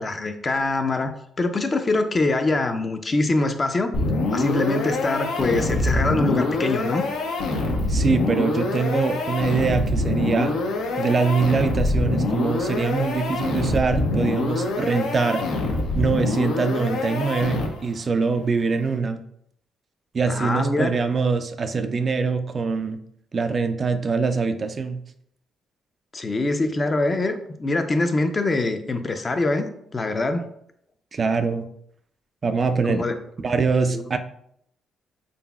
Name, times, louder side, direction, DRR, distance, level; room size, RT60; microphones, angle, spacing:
voice 1, 0.0-3.9 4.3-7.0 20.3-20.9 26.1-30.4 32.8-33.2 33.9-34.1, left 2 dB, 30° left, 7 dB, 0.4 m, -24 dB
sound 1, 3.9-18.0, left 2 dB, 80° left, 0.6 m, -25 dB
voice 2, 7.9-10.5 11.0-15.4 15.9-19.2 20.1-23.0 23.3-25.0 31.1-31.7 32.4-33.0 33.4-34.2, right 4 dB, 40° right, 8 dB, 0.3 m, -23 dB
3.9 x 3.5 x 2.3 m, 0.70 s
cardioid pair, 90°, 0 cm